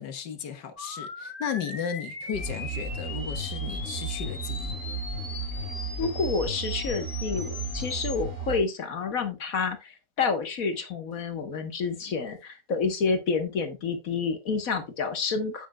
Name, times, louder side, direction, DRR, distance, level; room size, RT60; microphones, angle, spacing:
voice 1, 0.0-4.7, left 8 dB, 75° left, 1.8 m, -35 dB
sound 1, 0.8-8.2, left 3 dB, 30° left, 1.8 m, -40 dB
sound 2, 2.3-8.6, right 3 dB, 45° right, 3.7 m, -34 dB
voice 2, 6.0-15.7, left 4 dB, 55° left, 1.6 m, -29 dB
10.0 x 8.0 x 2.2 m
omnidirectional pair, 1.9 m